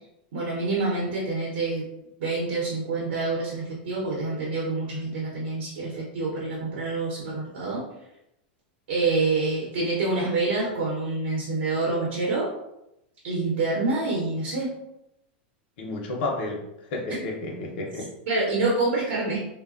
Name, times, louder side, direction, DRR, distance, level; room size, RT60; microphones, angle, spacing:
voice 1, 0.3-1.8 2.2-7.8 8.9-12.5 13.2-14.7 17.1-17.2 18.3-19.4, right 3 dB, 85° right, -5 dB, 0.8 m, -27 dB
voice 2, 15.8-16.6 16.9-18.1, left 2 dB, 65° left, 0 dB, 0.6 m, -31 dB
3.0 x 2.1 x 2.4 m, 0.85 s
supercardioid pair, 150°, 6 cm